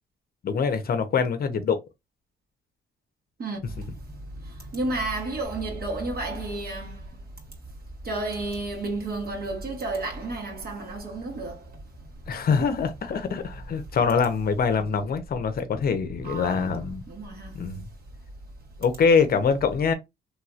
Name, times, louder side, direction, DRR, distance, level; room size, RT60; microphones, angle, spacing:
voice 1, 0.4-1.8 12.3-17.0 17.5-17.8 18.8-19.9, left 5 dB, 50° left, 0.7 m, -24 dB
voice 2, 3.4-7.2 8.0-11.6 16.2-16.7 17.1-17.5, right 2 dB, 50° right, 1.7 m, -32 dB
3.1 x 2.9 x 2.4 m
cardioid pair, 90°, 20 cm